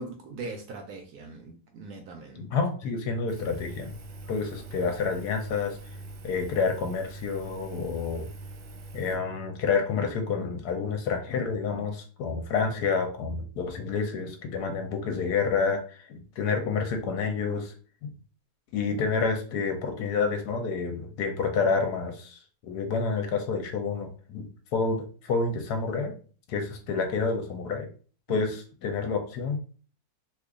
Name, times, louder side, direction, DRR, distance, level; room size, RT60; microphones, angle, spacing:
voice 1, 0.0-2.5, right 3 dB, 70° right, 0.9 m, -40 dB
voice 2, 2.3-4.0 4.3-5.8 6.2-8.3 8.9-17.7 18.7-26.1 26.5-27.9 28.3-29.6, left 5 dB, 70° left, 1.1 m, -29 dB
Engine, 3.3-9.2, right 2 dB, 90° right, 1.4 m, -43 dB
3.0 x 2.4 x 3.5 m
omnidirectional pair, 2.0 m